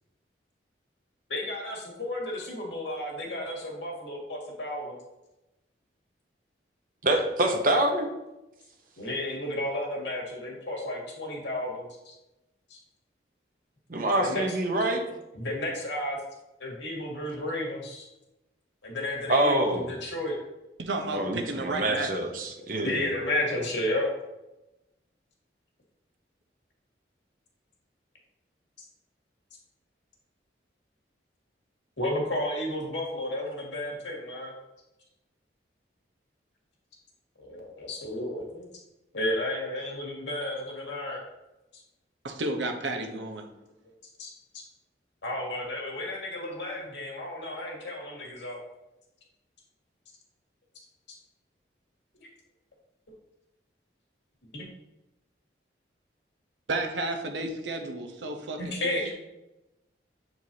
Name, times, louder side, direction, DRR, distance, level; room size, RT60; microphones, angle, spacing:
voice 1, 1.3-5.0 9.0-12.1 12.7-12.8 14.2-14.5 15.3-16.2 16.6-18.1 18.8-20.4 22.6-24.1 32.0-34.5 37.4-38.6 39.1-41.2 41.7-41.8 43.8-44.3 45.2-48.6 52.2-52.3 54.5-54.7 58.6-59.1, left 1 dB, 80° left, -1 dB, 2.0 m, -32 dB
voice 2, 7.0-8.1 13.9-15.0 19.3-19.9 21.1-23.1, right 1 dB, 45° right, 3 dB, 0.9 m, -26 dB
voice 3, 20.8-22.1 42.2-43.5 56.7-59.1, right 2 dB, 85° right, 4 dB, 0.9 m, -32 dB
7.8 x 4.6 x 2.8 m, 0.96 s
head